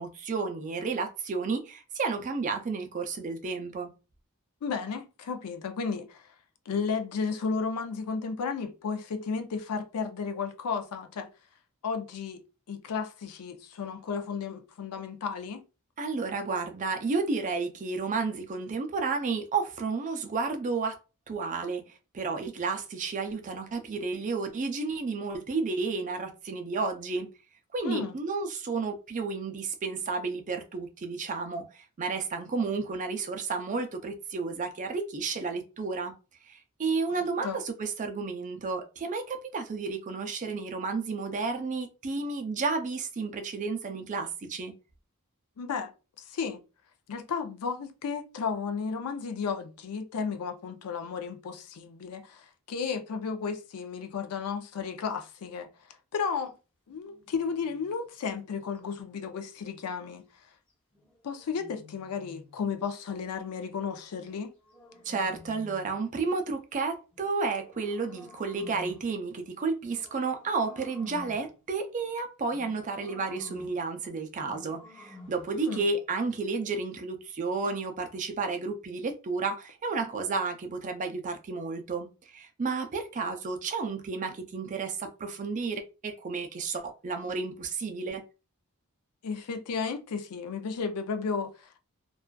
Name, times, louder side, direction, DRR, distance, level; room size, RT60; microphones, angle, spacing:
voice 1, 0.0-3.9 16.0-21.0 21.3-27.3 27.7-36.1 36.4-44.7 65.0-88.2, right 4 dB, 35° right, 0.4 m, -32 dB
voice 2, 4.6-6.2 6.7-11.3 11.8-12.4 12.7-15.6 27.8-28.1 37.4-37.6 45.6-45.9 46.3-46.6 47.1-55.7 56.1-56.6 56.9-60.2 61.2-64.5 75.5-75.8 89.2-91.8, left 5 dB, 85° left, 0.4 m, -33 dB
sound 1, 56.9-59.3 60.9-62.7 64.1-66.1 67.1-69.1 69.8-71.6 72.5-73.9 74.3-75.6, left 2 dB, 25° left, 0.8 m, -51 dB
2.4 x 2.3 x 2.2 m
head